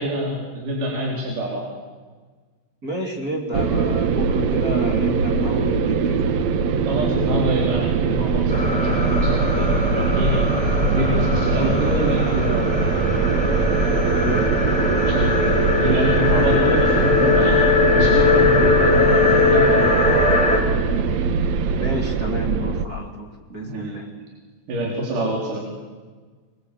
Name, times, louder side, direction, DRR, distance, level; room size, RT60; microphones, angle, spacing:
voice 1, 0.0-1.7 6.8-10.4 10.9-12.9 15.1-17.6 17.9-20.2 23.6-23.9 24.7-25.6, equal, 55° right, -2 dB, 5.5 m, -26 dB
voice 2, 2.8-6.3 14.1-14.5 21.7-24.1, right 1 dB, 25° right, 1 dB, 3.4 m, -30 dB
sound 1, 3.5-22.9, right 5 dB, 75° right, 1.6 m, -22 dB
sound 2, 8.5-20.6, left 3 dB, ahead, 4.2 m, -20 dB
26.0 x 23.0 x 8.5 m, 1.4 s
omnidirectional pair, 4.7 m